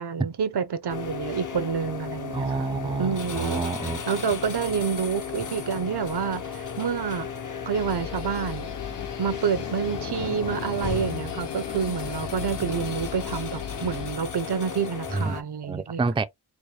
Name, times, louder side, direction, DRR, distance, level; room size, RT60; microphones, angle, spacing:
voice 1, 0.0-2.7 3.0-3.6 4.1-7.3 7.7-8.7 9.2-16.0, right 6 dB, 70° right, 0.7 m, -28 dB
sound 1, 0.9-15.4, left 6 dB, 45° left, 0.7 m, -34 dB
voice 2, 2.3-4.0 4.3-4.4 15.1-15.4 15.6-16.3, right 4 dB, 15° right, 0.4 m, -28 dB
sound 2, 7.7-14.2, left 8 dB, 80° left, 0.8 m, -39 dB
4.6 x 2.1 x 3.2 m
wide cardioid pair, 60°, 42 cm